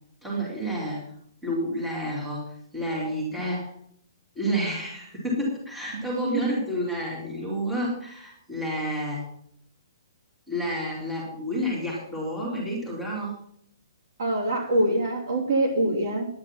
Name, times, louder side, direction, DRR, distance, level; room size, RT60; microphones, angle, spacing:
voice 1, 0.2-1.0 1.4-2.4 2.7-3.7 4.4-9.3 10.5-13.3, equal, ahead, -6 dB, 2.6 m, -30 dB
voice 2, 14.2-16.3, right 1 dB, 50° right, 0 dB, 2.8 m, -24 dB
10.5 x 9.6 x 5.8 m, 0.68 s
hypercardioid pair, 175°, 2 cm